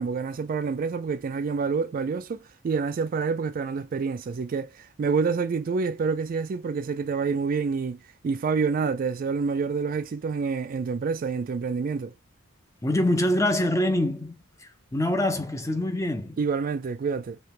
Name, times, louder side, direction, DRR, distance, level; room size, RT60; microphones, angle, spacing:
voice 1, 0.0-8.0 8.2-12.1 16.4-17.4, right 5 dB, 45° right, 0.3 m, -27 dB
voice 2, 12.8-14.4 14.6-16.4, left 1 dB, 15° left, 0.6 m, -25 dB
3.2 x 2.9 x 4.3 m
head